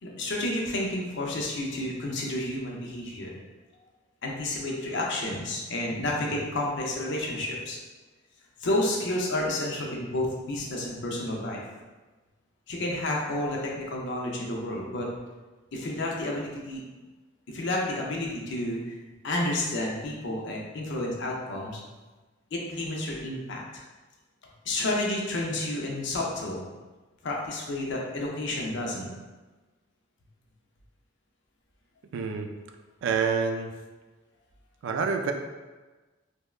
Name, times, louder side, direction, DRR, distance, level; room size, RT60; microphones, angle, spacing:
voice 1, 0.0-3.4 4.2-7.8 8.6-11.6 12.7-15.1 15.7-16.8 17.5-19.0 19.2-21.8 22.5-23.6 24.6-26.6 27.2-29.1, left 1 dB, 65° left, -2 dB, 0.6 m, -30 dB
voice 2, 32.1-32.5 33.0-33.7 34.8-35.3, right 5 dB, 65° right, 4 dB, 0.3 m, -27 dB
3.5 x 2.1 x 2.3 m, 1.2 s
head